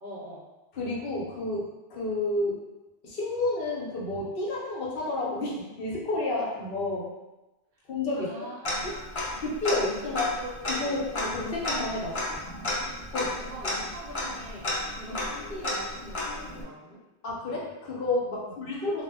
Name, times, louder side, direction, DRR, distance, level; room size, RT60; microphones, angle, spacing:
voice 1, 0.0-0.4 8.1-11.1 13.2-17.0 18.4-18.8, equal, 60° right, -5 dB, 0.8 m, -43 dB
voice 2, 0.8-2.6 3.0-7.1 7.9-8.5 9.4-10.3 10.7-12.4 13.1-13.4 17.2-19.0, left 2 dB, 65° left, -4 dB, 0.8 m, -30 dB
Tick-tock, 8.6-9.4 9.6-9.7 10.1-16.6, left 1 dB, 40° left, 0.5 m, -32 dB
2.1 x 2.0 x 3.4 m, 1.0 s
omnidirectional pair, 1.1 m